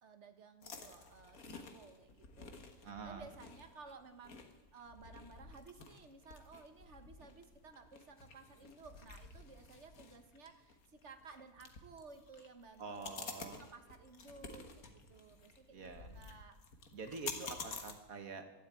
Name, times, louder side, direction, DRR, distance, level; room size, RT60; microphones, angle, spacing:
voice 1, 0.0-4.4 4.7-16.6, right 4 dB, 50° right, 7 dB, 1.7 m, -56 dB
sound 1, 0.6-17.9, left 4 dB, 70° left, 1.9 m, -51 dB
voice 2, 2.8-3.2 12.8-13.6 15.7-16.1 16.9-18.4, right 4 dB, 65° right, 6 dB, 2.0 m, -46 dB
13.0 x 12.0 x 9.0 m, 1.1 s
omnidirectional pair, 1.6 m